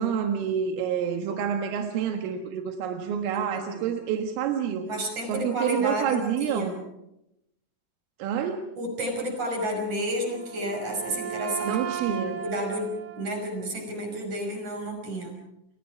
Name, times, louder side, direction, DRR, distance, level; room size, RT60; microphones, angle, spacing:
voice 1, 0.0-4.9 5.3-6.8 8.2-8.6 11.7-12.4, right 8 dB, 85° right, 4 dB, 4.1 m, -28 dB
voice 2, 3.3-3.9 4.8-6.8 8.8-12.9 13.2-15.4, right 1 dB, 40° right, 3 dB, 6.8 m, -31 dB
Wind instrument woodwind instrument, 10.1-14.1, right 7 dB, 60° right, 3.3 m, -36 dB
29.5 x 26.0 x 4.9 m, 0.84 s
omnidirectional pair, 5.6 m